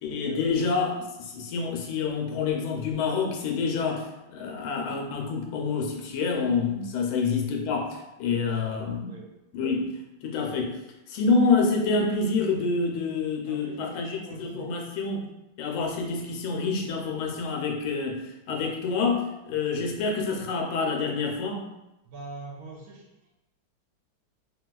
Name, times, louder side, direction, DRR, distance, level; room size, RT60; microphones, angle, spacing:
voice 1, 0.0-9.1 9.5-9.9 10.2-10.7 11.1-15.3 15.6-21.6, left 4 dB, 90° left, 1 dB, 1.5 m, -27 dB
voice 2, 8.5-9.3 13.5-14.7 22.0-23.3, right 3 dB, 70° right, -2 dB, 0.9 m, -44 dB
4.0 x 2.3 x 2.3 m, 0.95 s
omnidirectional pair, 2.3 m